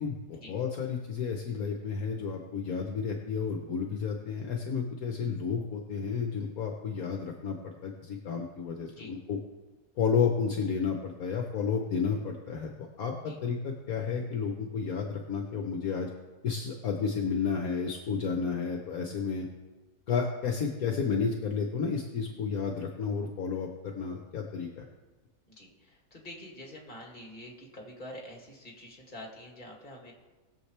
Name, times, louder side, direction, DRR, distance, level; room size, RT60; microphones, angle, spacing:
voice 1, 0.0-9.4 10.0-12.7 13.0-16.1 16.4-19.5 20.1-24.8, left 6 dB, 65° left, 2 dB, 1.3 m, -31 dB
voice 2, 25.6-30.1, left 1 dB, 30° left, -1 dB, 2.3 m, -46 dB
19.5 x 7.2 x 3.3 m, 1.2 s
omnidirectional pair, 1.7 m